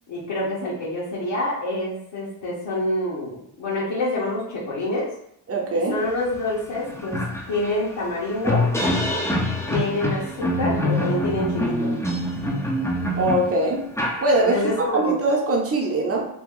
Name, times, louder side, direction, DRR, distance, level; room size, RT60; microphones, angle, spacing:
voice 1, 0.1-5.1 5.9-7.2 7.5-8.6 9.7-11.9 14.4-15.2, left 1 dB, 65° left, -7 dB, 1.3 m, -27 dB
voice 2, 5.5-6.0 13.1-13.8 14.2-16.3, right 2 dB, 30° right, -1 dB, 0.9 m, -22 dB
sound 1, 6.3-6.4 6.8-14.8, left 1 dB, 5° left, 0.6 m, -25 dB
3.0 x 2.3 x 3.7 m, 0.71 s
cardioid pair, 85°, 46 cm